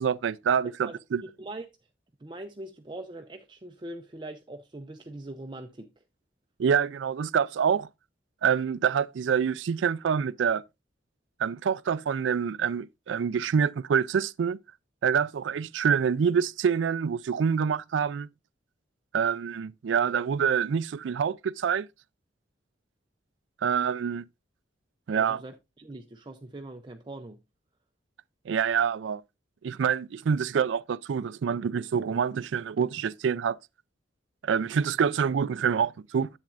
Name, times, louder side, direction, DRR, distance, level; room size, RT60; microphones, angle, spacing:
voice 1, 0.0-1.2 6.6-7.9 8.4-10.6 11.4-14.6 15.0-18.3 19.1-21.9 23.6-24.2 25.1-25.4 28.5-29.2 29.6-33.6 34.4-36.3, right 7 dB, 80° right, 0.4 m, -26 dB
voice 2, 0.9-1.7 2.2-6.0 25.1-27.4, right 2 dB, 25° right, 0.6 m, -42 dB
10.5 x 8.1 x 2.4 m
head